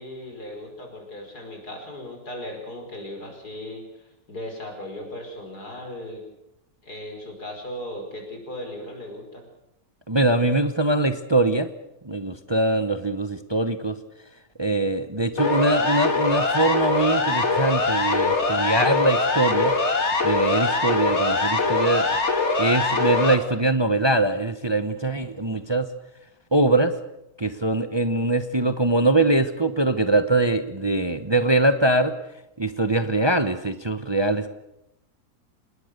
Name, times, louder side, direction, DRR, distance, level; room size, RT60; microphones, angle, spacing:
voice 1, 0.0-6.2 6.8-9.4, left 1 dB, 85° left, 3 dB, 5.8 m, -37 dB
voice 2, 10.1-11.7 12.0-14.0 14.6-19.7 20.2-22.1 22.6-25.9 26.5-27.0 27.4-32.1 32.6-34.5, right 2 dB, 20° right, 10 dB, 0.9 m, -22 dB
Siren, 15.4-23.4, left 3 dB, 45° left, 2.5 m, -22 dB
26.5 x 20.0 x 6.7 m, 0.86 s
omnidirectional pair, 1.6 m